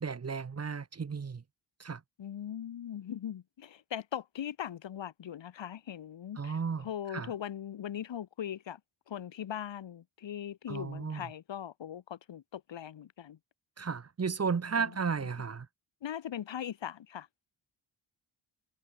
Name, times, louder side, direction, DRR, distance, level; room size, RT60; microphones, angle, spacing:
voice 1, 0.0-1.4 1.8-2.0 6.4-7.3 10.7-11.2 13.8-15.7, right 5 dB, 35° right, 2.2 m, -34 dB
voice 2, 2.2-8.8 9.1-13.4 14.8-14.9 15.2-15.3 16.0-17.3, left 10 dB, 85° left, 5.8 m, -40 dB
wide cardioid pair, 140°, 43 cm